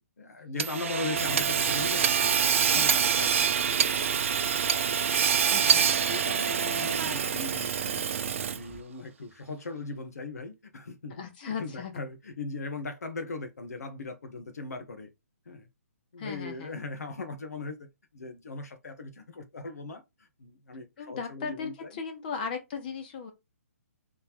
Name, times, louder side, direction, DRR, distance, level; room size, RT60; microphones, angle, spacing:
voice 1, 0.2-4.1 4.8-5.0 5.6-8.1 8.5-15.1 15.4-15.7 16.1-17.9 18.1-21.9, left 3 dB, 80° left, 1.4 m, -39 dB
Hammer / Sawing, 0.6-8.8, right 7 dB, 55° right, 0.6 m, -26 dB
voice 2, 5.5-5.9 11.2-12.0 16.2-16.8 21.0-23.3, left 5 dB, 35° left, 1.3 m, -37 dB
4.0 x 3.6 x 3.0 m
hypercardioid pair, 160°, 8 cm